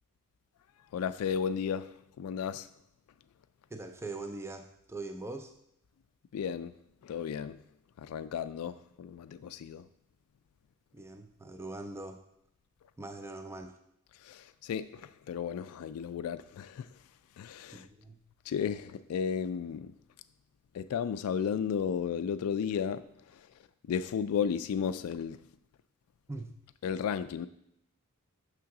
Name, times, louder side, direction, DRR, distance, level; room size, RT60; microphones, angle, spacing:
voice 1, 0.9-2.7 6.3-6.8 7.0-7.6 8.0-9.8 14.2-16.9 17.4-17.9 18.5-19.9 20.7-23.0 23.9-25.4 26.8-27.5, left 7 dB, 80° left, 0.3 m, -34 dB
voice 2, 3.7-5.5 10.9-12.2 13.0-13.8 17.7-18.2 26.3-26.5, right 2 dB, 10° right, 0.4 m, -42 dB
6.2 x 3.7 x 5.8 m
head